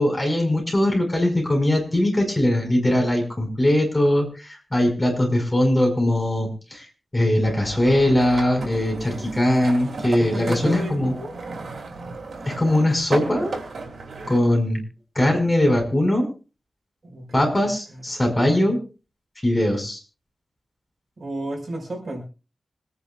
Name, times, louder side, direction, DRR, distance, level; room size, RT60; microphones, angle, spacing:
voice 1, 0.0-6.8 7.1-11.1 12.4-13.6 14.3-14.8 15.2-16.3 17.3-18.8 19.4-20.0, left 1 dB, 20° left, 1 dB, 5.4 m, -21 dB
sound 1, 7.4-14.4, right 3 dB, 90° right, 2.8 m, -34 dB
voice 2, 10.2-11.3 14.5-14.6 17.0-17.5 17.9-18.3 21.2-22.2, right 1 dB, 55° right, 0 dB, 5.2 m, -33 dB
26.0 x 9.8 x 2.4 m, 0.34 s
wide cardioid pair, 110°, 0 cm